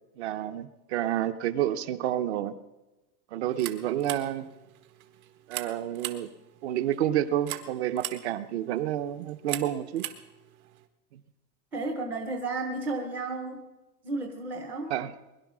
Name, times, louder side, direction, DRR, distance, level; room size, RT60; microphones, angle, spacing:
voice 1, 0.2-2.6 3.3-4.5 5.5-6.3 6.6-10.0 11.1-11.2 14.9-15.1, right 12 dB, 45° right, 11 dB, 0.8 m, -29 dB
sound 1, 3.4-10.9, right 13 dB, 70° right, 1.5 m, -42 dB
voice 2, 11.7-13.7 14.0-14.9, right 2 dB, 5° right, 3 dB, 0.5 m, -33 dB
21.0 x 11.0 x 6.1 m, 1.1 s
supercardioid pair, 170°, 45 cm